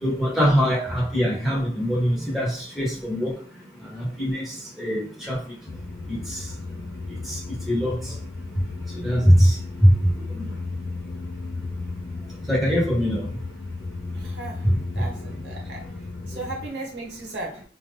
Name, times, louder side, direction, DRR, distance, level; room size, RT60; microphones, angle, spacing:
voice 1, 0.0-3.4 3.9-5.4 6.1-6.4 7.3-7.4 7.7-8.1 9.0-9.6 9.8-10.5 12.5-13.3 14.6-14.8, equal, ahead, -5 dB, 1.0 m, -22 dB
sound 1, 5.7-16.7, left 3 dB, 45° left, 0.3 m, -34 dB
voice 2, 14.1-14.7 14.9-15.8 16.3-17.6, right 2 dB, 75° right, -2 dB, 1.0 m, -35 dB
2.9 x 2.5 x 3.4 m, 0.42 s
head